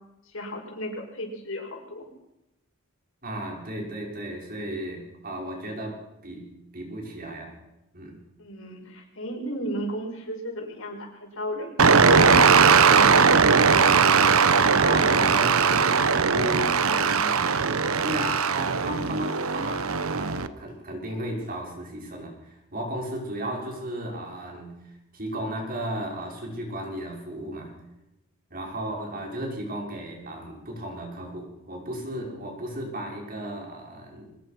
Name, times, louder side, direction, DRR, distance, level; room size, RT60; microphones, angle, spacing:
voice 1, 0.3-2.1 8.4-13.1, equal, 65° left, 2 dB, 6.0 m, -34 dB
voice 2, 3.2-7.6 7.9-8.2 14.8-17.4 18.0-27.7 28.5-34.3, right 1 dB, 45° right, 0 dB, 5.9 m, -34 dB
sound 1, 11.8-20.5, right 5 dB, 85° right, 1.1 m, -19 dB
24.0 x 20.0 x 6.1 m, 0.90 s
head